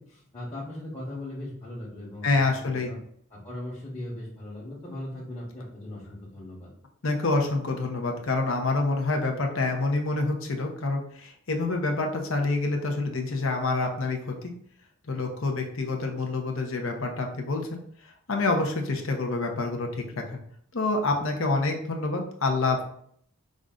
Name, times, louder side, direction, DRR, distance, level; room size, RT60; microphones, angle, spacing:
voice 1, 0.0-2.5 2.7-3.0 3.3-6.7, left 1 dB, 20° left, -9 dB, 1.1 m, -38 dB
voice 2, 2.2-2.9 7.0-14.5 15.1-17.8 18.3-20.4 20.7-22.8, left 3 dB, 65° left, 2 dB, 0.8 m, -27 dB
5.3 x 2.5 x 3.6 m, 0.65 s
head